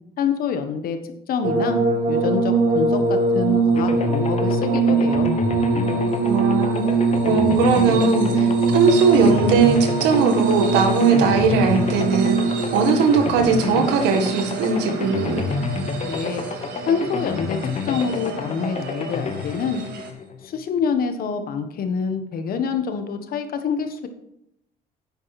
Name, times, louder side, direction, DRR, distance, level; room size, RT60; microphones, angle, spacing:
voice 1, 0.2-1.0 1.3-1.8 2.1-5.3 16.0-16.4 16.9-19.8 20.4-24.1, left 6 dB, 60° left, 7 dB, 1.4 m, -26 dB
sound 1, 1.4-16.7 17.5-18.3 19.7-19.8, right 3 dB, 55° right, 2.6 m, -22 dB
sound 2, 3.7-20.7, left 4 dB, 40° left, 1.2 m, -30 dB
voice 2, 6.2-6.9 7.2-12.4 12.7-15.5, right 5 dB, 90° right, 5 dB, 1.8 m, -19 dB
sound 3, 8.8-20.1, right 7 dB, 70° right, 1.9 m, -37 dB
10.0 x 8.9 x 4.2 m, 0.78 s
cardioid pair, 110°, 17 cm